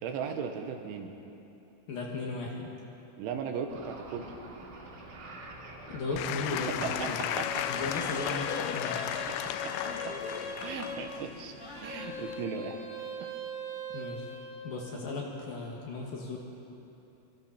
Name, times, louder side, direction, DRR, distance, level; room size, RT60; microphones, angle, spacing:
voice 1, 0.0-1.3 3.2-4.3 6.8-7.7 9.3-9.8 10.0-10.2 10.6-11.6 11.8-12.8 13.2-13.3, right 6 dB, 80° right, 5 dB, 3.4 m, -37 dB
voice 2, 1.9-2.8 5.9-7.3 7.7-9.0 13.9-14.3 14.6-16.4, left 3 dB, 55° left, -2 dB, 3.1 m, -36 dB
sound 1, 3.7-9.1, right 2 dB, 60° right, 4.5 m, -49 dB
Applause / Crowd, 6.2-12.5, left 10 dB, 80° left, 2.8 m, -35 dB
sound 2, 7.0-11.1 11.6-14.6, equal, 5° left, 4.5 m, -40 dB
25.5 x 24.0 x 4.4 m, 2.9 s
omnidirectional pair, 5.8 m